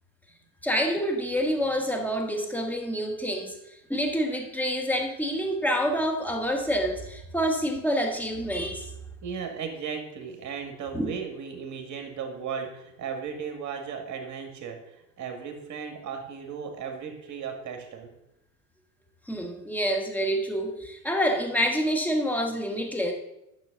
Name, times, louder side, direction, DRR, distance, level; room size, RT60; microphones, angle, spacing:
voice 1, 0.6-3.6 3.9-8.9 10.9-11.1 19.3-23.1, equal, 5° left, 2 dB, 1.4 m, -27 dB
voice 2, 9.2-18.1, right 6 dB, 35° right, 4 dB, 2.1 m, -36 dB
10.5 x 6.4 x 3.8 m, 0.87 s
hypercardioid pair, 85°, 48 cm